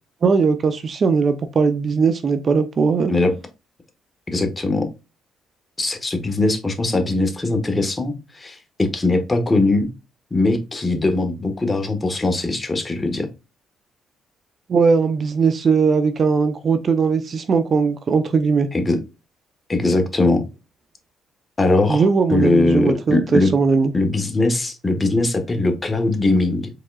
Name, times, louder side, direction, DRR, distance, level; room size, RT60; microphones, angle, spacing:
voice 1, 0.2-3.1 14.7-18.7 21.9-23.9, right 5 dB, 45° right, 0.6 m, -19 dB
voice 2, 4.3-4.9 5.8-9.9 10.3-13.3 18.7-19.0 19.7-20.4 21.6-23.5 23.9-26.7, left 2 dB, 20° left, 1.2 m, -20 dB
4.7 x 3.7 x 2.3 m
cardioid pair, 90°, 0 cm